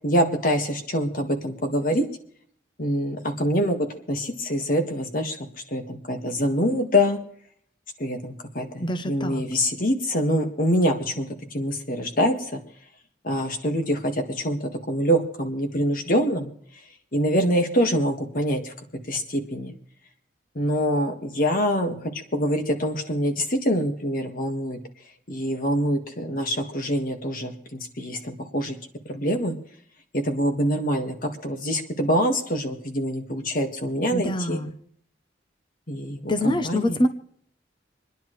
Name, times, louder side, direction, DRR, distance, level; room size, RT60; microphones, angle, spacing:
voice 1, 0.0-2.0 2.8-5.4 5.7-7.2 8.0-12.6 13.2-16.5 17.1-18.7 19.1-19.7 20.5-22.0 22.3-24.8 25.3-28.8 29.1-29.6 30.1-34.6 35.9-37.0, equal, 50° left, 5 dB, 1.8 m, -25 dB
voice 2, 8.8-9.4 34.1-34.7 36.3-37.1, left 1 dB, 25° left, 8 dB, 0.8 m, -25 dB
27.5 x 10.5 x 3.2 m, 0.63 s
head